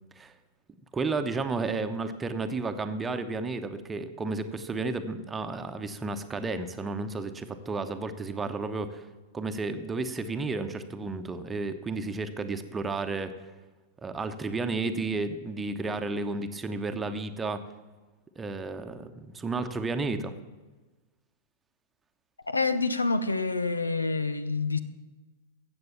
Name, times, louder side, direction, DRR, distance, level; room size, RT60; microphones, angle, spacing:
voice 1, 0.9-9.1 9.3-13.3 14.0-17.6 18.4-20.4, right 3 dB, 15° right, 1.0 m, -32 dB
voice 2, 22.5-24.8, left 3 dB, 85° left, 0.8 m, -27 dB
14.5 x 8.0 x 7.0 m
figure-of-eight pair, 100°, 0 cm